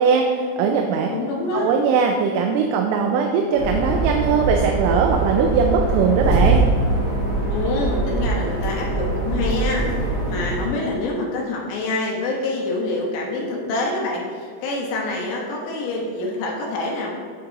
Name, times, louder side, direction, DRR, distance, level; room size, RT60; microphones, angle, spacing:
voice 1, 0.0-1.1 1.5-6.6, right 5 dB, 85° right, 2 dB, 3.0 m, -20 dB
voice 2, 1.1-1.7 7.5-17.1, left 2 dB, 75° left, -2 dB, 3.2 m, -26 dB
sound 1, 3.6-10.7, right 2 dB, 60° right, 1.9 m, -22 dB
7.9 x 7.2 x 2.9 m, 2.2 s
omnidirectional pair, 5.5 m